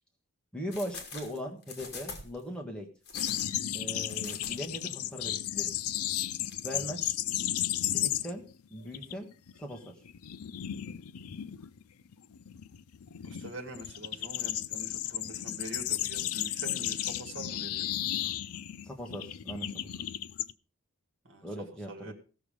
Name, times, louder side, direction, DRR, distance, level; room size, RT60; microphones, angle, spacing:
voice 1, 0.5-2.9 3.7-5.9 6.6-7.2 7.9-9.3 9.6-10.0 18.8-19.9 21.4-22.1, equal, 5° left, 0 dB, 1.4 m, -40 dB
sound 1, 0.7-2.4 3.0-4.8 5.1-5.3 6.4-6.5, left 4 dB, 50° left, 2.7 m, -44 dB
sound 2, 3.1-8.5 8.8-9.1 9.5-20.5, left 12 dB, 85° left, 0.5 m, -34 dB
voice 2, 13.2-17.9 21.2-21.5 21.9-22.1, right 1 dB, 55° right, 5 dB, 2.3 m, -44 dB
16.0 x 7.0 x 5.0 m, 0.35 s
head